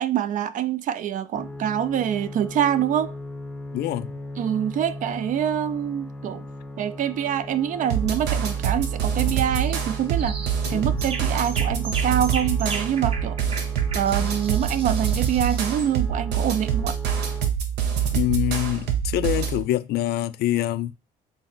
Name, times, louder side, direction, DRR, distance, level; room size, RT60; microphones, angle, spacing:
voice 1, 0.0-3.1 4.4-6.4 6.8-10.4 10.7-13.4 13.9-17.0, right 10 dB, 50° right, 0.4 m, -25 dB
sound 1, 1.3-17.5, left 2 dB, ahead, 0.6 m, -38 dB
voice 2, 3.7-4.1 10.7-11.0 18.1-20.9, left 15 dB, 70° left, 0.4 m, -25 dB
sound 2, 7.9-19.6, right 8 dB, 85° right, 0.8 m, -25 dB
sound 3, 9.5-9.8 10.2-10.6 11.0-15.9, right 4 dB, 35° right, 0.8 m, -36 dB
2.9 x 2.7 x 4.3 m
cardioid pair, 110°, 17 cm